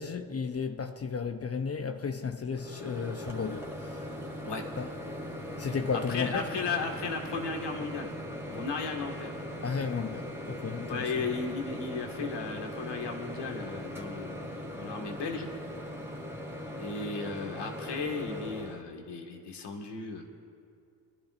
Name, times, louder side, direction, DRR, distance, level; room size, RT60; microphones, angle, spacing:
voice 1, 0.0-4.1 4.8-4.9 5.6-6.5 9.6-11.1, left 5 dB, 30° left, 0.8 m, -33 dB
Microwave oven, 2.5-18.8, equal, 5° right, 2.5 m, -40 dB
voice 2, 6.1-8.1 8.5-9.3 10.9-15.5 16.8-20.2, left 4 dB, 60° left, 1.9 m, -35 dB
23.0 x 11.5 x 2.6 m
hypercardioid pair, 45°, 46 cm